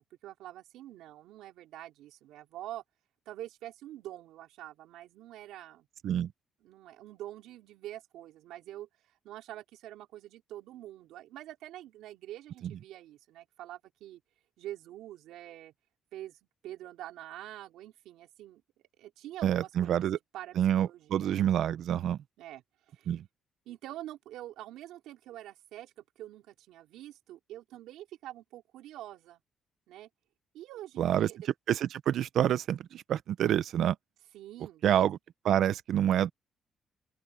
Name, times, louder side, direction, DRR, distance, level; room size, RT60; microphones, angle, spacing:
voice 1, 0.0-2.8 3.3-5.9 6.6-8.9 9.2-14.2 14.6-15.7 16.1-19.9 20.3-21.4 22.4-23.2 23.7-29.4 29.9-30.1 30.5-31.5 34.3-35.1, right 13 dB, 90° right, 3.6 m, -46 dB
voice 2, 19.4-20.2 20.6-22.2 23.1-23.2 31.0-31.3 31.7-34.0 34.8-35.2 35.4-36.3, right 10 dB, 70° right, 0.8 m, -27 dB
open air
cardioid pair, 90°, 0 cm